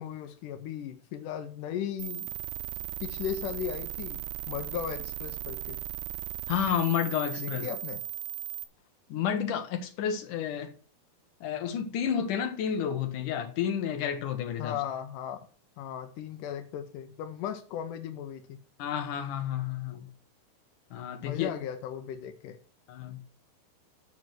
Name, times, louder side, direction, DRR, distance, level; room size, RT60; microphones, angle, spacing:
voice 1, 0.0-2.3 2.8-4.2 4.5-5.8 7.4-8.0 14.6-15.5 15.8-18.6 21.2-22.6, left 9 dB, 80° left, 1.9 m, -37 dB
sound 1, 2.0-8.6, right 14 dB, 85° right, 2.7 m, -37 dB
voice 2, 6.5-7.7 9.1-10.7 11.4-14.8 18.8-20.1 20.9-21.5 22.9-23.2, left 9 dB, 65° left, 2.4 m, -30 dB
7.4 x 6.1 x 7.9 m
omnidirectional pair, 4.7 m